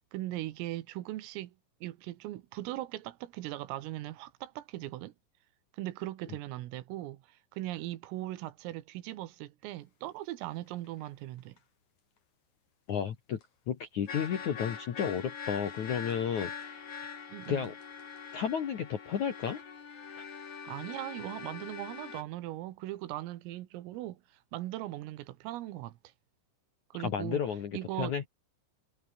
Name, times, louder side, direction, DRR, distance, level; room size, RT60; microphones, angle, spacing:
voice 1, 0.0-1.6 1.8-5.1 5.7-11.6 17.3-17.7 20.7-24.2 24.5-26.0 26.9-27.4 27.7-28.1, right 15 dB, 80° right, 4.0 m, -39 dB
sound 1, 10.4-10.5 10.8-11.1 11.6-11.7 13.4-13.5 14.1-22.2, left 6 dB, 40° left, 4.2 m, -43 dB
voice 2, 12.9-13.4 13.7-16.9 17.5-17.7 18.3-19.6 27.0-28.2, left 8 dB, 60° left, 2.0 m, -32 dB
omnidirectional pair, 5.9 m